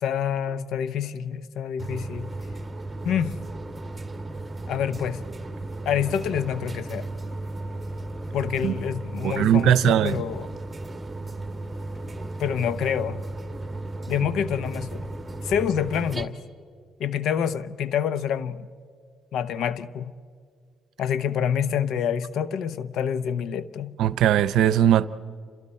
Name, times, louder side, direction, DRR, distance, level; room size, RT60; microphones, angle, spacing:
voice 1, 0.0-2.3 3.0-3.4 4.7-5.2 5.8-7.1 8.3-10.6 12.4-13.2 14.1-15.1 15.4-16.3 17.0-18.7 19.3-20.1 21.0-24.0, left 8 dB, 80° left, 0.7 m, -27 dB
sound 1, 1.8-16.2, right 2 dB, 20° right, 1.8 m, -35 dB
voice 2, 9.2-10.2 24.0-25.1, right 10 dB, 85° right, 0.6 m, -19 dB
29.0 x 27.5 x 4.3 m
cardioid pair, 90°, 0 cm